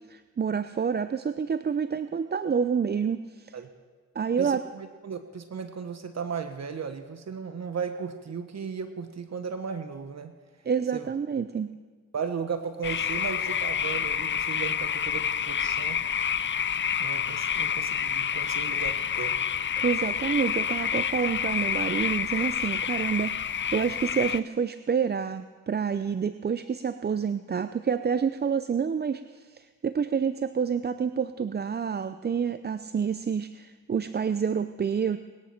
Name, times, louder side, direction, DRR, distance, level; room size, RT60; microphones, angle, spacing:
voice 1, 0.1-3.6 4.1-4.6 10.7-11.7 19.8-35.2, right 6 dB, 30° right, 12 dB, 0.5 m, -28 dB
voice 2, 4.4-10.3 10.9-11.1 12.1-16.0 17.0-19.4, right 6 dB, 55° right, 8 dB, 1.2 m, -36 dB
sound 1, 12.8-24.4, left 8 dB, 35° left, 0.5 m, -28 dB
20.0 x 10.5 x 5.9 m, 1.5 s
cardioid pair, 60°, 33 cm